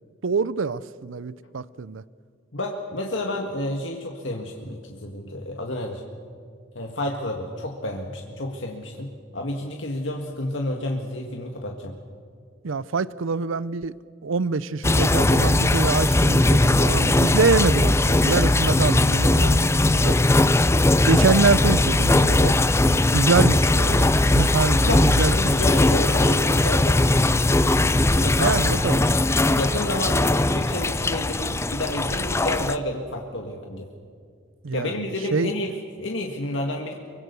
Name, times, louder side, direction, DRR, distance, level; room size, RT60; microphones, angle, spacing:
voice 1, 0.2-2.0 12.6-13.9 14.2-20.2 21.0-22.6 23.0-25.7 28.4-29.1 34.6-35.5, right 4 dB, 80° right, 0.6 m, -25 dB
voice 2, 2.5-6.0 6.8-11.9 24.8-27.3 28.1-28.7 29.6-33.9 34.7-36.9, left 1 dB, 70° left, 1.8 m, -30 dB
sound 1, 14.8-32.8, left 2 dB, 15° left, 0.6 m, -19 dB
24.0 x 23.5 x 6.9 m
head